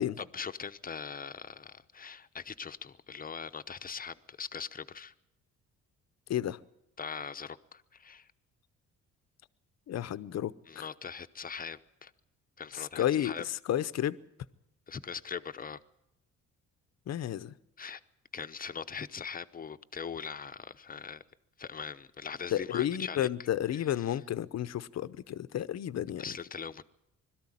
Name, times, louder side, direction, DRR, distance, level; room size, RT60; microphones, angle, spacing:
voice 1, 0.2-5.1 7.0-8.3 10.7-12.1 12.6-13.4 14.9-15.8 17.8-18.0 18.3-21.2 21.6-23.3 23.7-24.2 26.2-26.8, left 6 dB, 30° left, 0.8 m, -41 dB
voice 2, 9.9-10.5 12.7-14.2 17.1-17.5 22.5-26.2, left 11 dB, 60° left, 0.8 m, -31 dB
21.5 x 13.5 x 9.9 m
cardioid pair, 90°, 30 cm